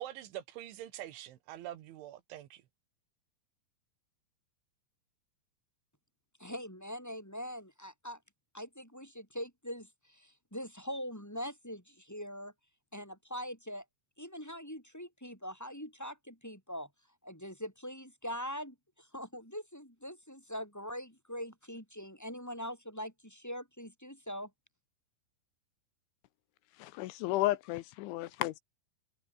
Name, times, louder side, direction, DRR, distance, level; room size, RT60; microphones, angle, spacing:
voice 1, 0.0-2.6, right 13 dB, 80° right, 3.9 m, -44 dB
voice 2, 6.4-8.2 8.5-12.5 12.9-13.8 14.2-16.9 17.2-24.5, equal, 5° left, 6.3 m, -42 dB
voice 3, 26.8-28.6, left 17 dB, 80° left, 3.2 m, -33 dB
omnidirectional pair, 5.5 m